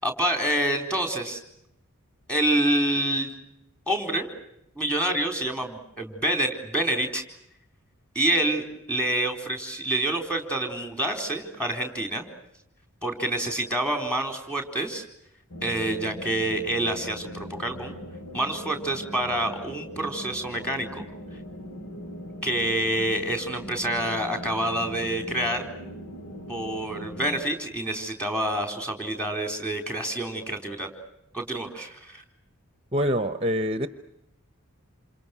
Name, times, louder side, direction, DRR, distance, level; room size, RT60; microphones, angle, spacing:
voice 1, 0.0-1.4 2.3-3.3 3.9-4.3 4.8-7.2 8.1-12.3 13.0-15.0 15.6-18.0 18.3-21.1 22.4-25.7 26.5-30.9 31.3-32.2, right 1 dB, 5° left, 5 dB, 4.1 m, -27 dB
sound 1, 15.5-27.4, equal, 90° left, 3.2 m, -40 dB
voice 2, 32.9-33.9, equal, 25° right, 10 dB, 0.9 m, -25 dB
28.5 x 28.0 x 6.1 m, 0.79 s
head